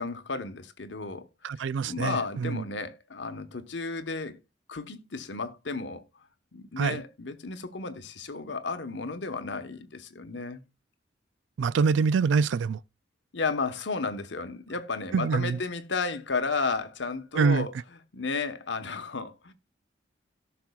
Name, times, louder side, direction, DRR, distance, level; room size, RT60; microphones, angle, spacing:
voice 1, 0.0-1.3 1.6-4.4 4.7-6.0 6.5-10.6 13.3-19.5, left 4 dB, 85° left, 1.0 m, -33 dB
voice 2, 1.4-2.6 6.8-7.0 11.6-12.8 15.1-15.6 17.4-17.7, right 5 dB, 90° right, 0.4 m, -25 dB
17.5 x 6.0 x 2.3 m
head